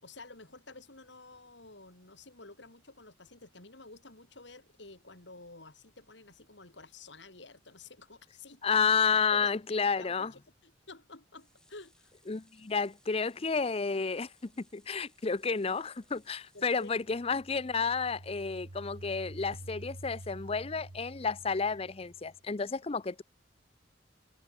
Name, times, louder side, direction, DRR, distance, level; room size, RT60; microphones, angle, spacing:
voice 1, 0.0-8.8 9.3-9.5 10.0-12.1 16.5-16.9, left 3 dB, 70° left, 3.8 m, -51 dB
voice 2, 8.6-10.3 12.3-23.2, left 5 dB, 30° left, 0.6 m, -31 dB
sound 1, 11.4-17.7 18.1-18.2 18.5-18.6, left 1 dB, 5° left, 6.8 m, -67 dB
sound 2, 16.9-22.5, right 1 dB, 65° right, 1.4 m, -49 dB
head